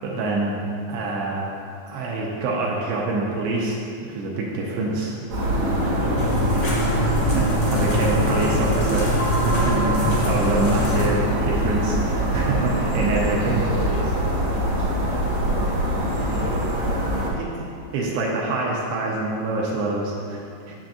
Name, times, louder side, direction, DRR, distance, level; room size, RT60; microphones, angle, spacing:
voice 1, 0.0-0.6 0.9-1.5 1.9-3.8 4.1-5.1 5.6-6.1 7.3-13.6 17.4-20.7, right 2 dB, 80° right, -3 dB, 2.8 m, -26 dB
voice 2, 4.8-5.3 5.7-7.4 12.5-12.8 13.4-17.2 20.7-20.8, left 1 dB, 85° left, -5 dB, 3.1 m, -35 dB
sound 1, 5.3-17.3, right 1 dB, 55° right, 1.6 m, -24 dB
sound 2, 6.2-11.1, left 1 dB, 65° left, 1.4 m, -25 dB
8.8 x 7.3 x 2.6 m, 2.5 s
omnidirectional pair, 5.3 m